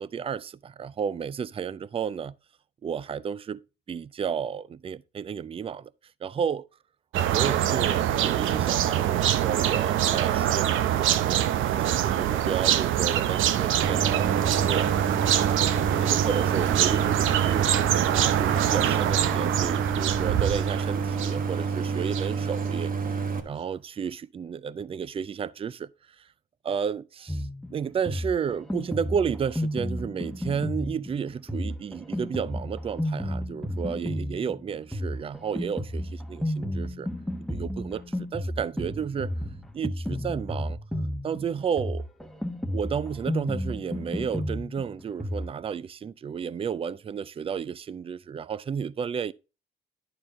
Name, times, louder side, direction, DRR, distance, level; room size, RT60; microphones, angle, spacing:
voice 1, 0.0-2.4 2.8-3.6 3.9-5.9 6.2-6.7 7.3-14.9 15.4-17.9 18.4-25.9 26.2-26.3 26.6-37.1 37.5-39.3 39.7-40.8 41.2-42.1 42.7-49.3, right 7 dB, 30° right, 0.4 m, -32 dB
sound 1, 7.1-22.3, right 11 dB, 80° right, 0.7 m, -25 dB
Idling, 13.8-23.4, right 5 dB, 45° right, 1.3 m, -29 dB
Drum kit, 27.3-45.5, equal, ahead, 1.0 m, -32 dB
11.0 x 4.5 x 3.6 m
cardioid pair, 90°, 20 cm